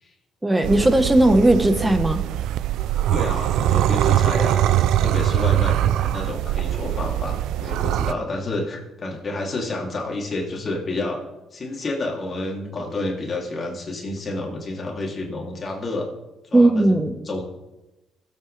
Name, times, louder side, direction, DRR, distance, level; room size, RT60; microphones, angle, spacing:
voice 1, 0.4-2.2 16.5-17.1, right 1 dB, 15° right, 8 dB, 1.2 m, -17 dB
sound 1, 0.6-8.1, right 12 dB, 90° right, 0.4 m, -22 dB
voice 2, 3.1-11.2 11.5-16.1 16.5-17.4, left 2 dB, 40° left, -1 dB, 3.0 m, -30 dB
21.0 x 8.2 x 3.4 m, 1.0 s
cardioid pair, 90°, 0 cm